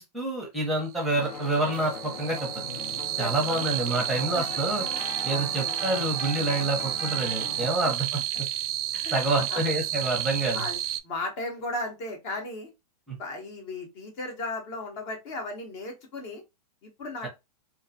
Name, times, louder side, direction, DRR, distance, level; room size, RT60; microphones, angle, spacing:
voice 1, 0.0-2.6 3.2-4.9 5.2-8.2 9.1-10.6 13.1-13.2 17.2-17.3, right 2 dB, ahead, 0.7 m, -28 dB
sound 1, 1.0-11.0, right 13 dB, 60° right, 0.4 m, -31 dB
sound 2, 1.1-7.7, left 4 dB, 70° left, 0.7 m, -39 dB
voice 2, 3.2-3.7 4.1-4.4 5.3-5.5 9.0-9.6 10.5-12.7 13.2-16.4 16.8-17.3, left 2 dB, 40° left, 0.8 m, -36 dB
2.4 x 2.2 x 2.6 m
hypercardioid pair, 140°, 21 cm